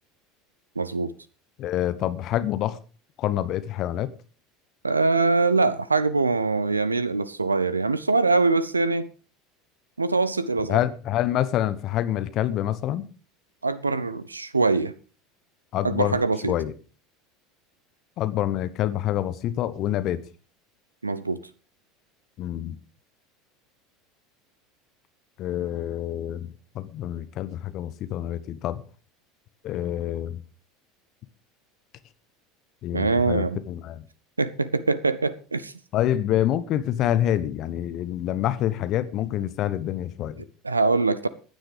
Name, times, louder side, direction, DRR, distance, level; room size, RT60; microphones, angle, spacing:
voice 1, 0.8-1.1 4.8-9.1 10.0-10.8 13.6-14.9 15.8-16.5 21.0-21.4 32.9-33.6 34.4-35.7 40.6-41.3, right 3 dB, 85° right, 0.7 m, -23 dB
voice 2, 1.6-2.8 3.2-4.1 10.7-13.0 15.7-16.2 16.5-16.7 18.2-20.2 22.4-22.8 25.4-26.5 26.7-28.8 29.6-30.4 32.8-34.0 35.9-40.4, left 12 dB, 45° left, 1.1 m, -26 dB
15.5 x 10.0 x 5.0 m
figure-of-eight pair, 75°, 0 cm